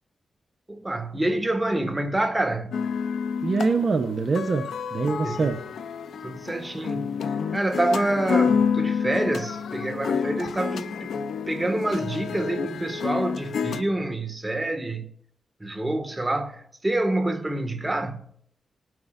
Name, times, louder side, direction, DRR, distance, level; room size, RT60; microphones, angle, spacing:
voice 1, 0.7-2.9 5.2-5.4 6.2-11.1 11.5-15.1 15.6-18.3, right 1 dB, 20° right, 1.7 m, -27 dB
sound 1, 2.7-13.8, left 6 dB, 80° left, 0.6 m, -28 dB
voice 2, 3.4-5.6, right 4 dB, 60° right, 0.8 m, -24 dB
20.5 x 9.4 x 2.5 m
cardioid pair, 55°, 0 cm